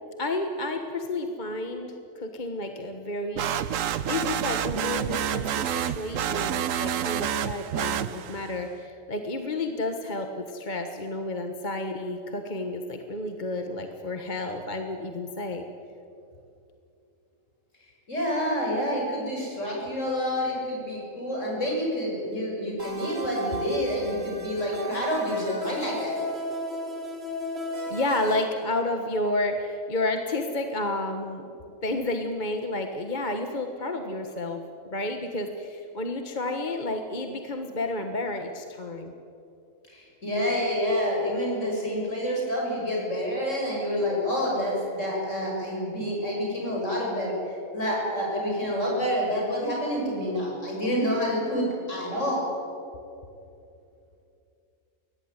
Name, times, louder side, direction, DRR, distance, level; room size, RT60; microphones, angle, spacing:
voice 1, 0.2-3.8 4.1-15.6 27.9-31.4 31.8-39.1, left 2 dB, 35° left, 5 dB, 1.5 m, -31 dB
sound 1, 3.4-8.6, right 9 dB, 75° right, 1.1 m, -28 dB
voice 2, 18.1-26.1 39.9-52.5, equal, 65° left, -3 dB, 7.6 m, -28 dB
sound 2, 22.8-28.4, equal, 50° right, 3.5 m, -35 dB
23.5 x 18.0 x 9.8 m, 2.7 s
omnidirectional pair, 1.4 m